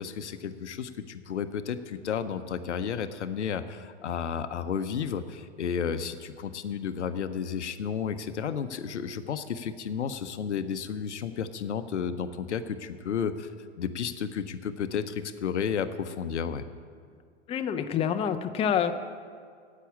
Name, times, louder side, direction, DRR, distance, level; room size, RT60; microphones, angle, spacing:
voice 1, 0.0-13.5 13.8-16.6, left 7 dB, 75° left, 10 dB, 0.7 m, -32 dB
voice 2, 17.5-18.9, left 8 dB, 15° left, 8 dB, 0.5 m, -27 dB
9.9 x 8.4 x 8.4 m, 2.1 s
figure-of-eight pair, 95°, 35 cm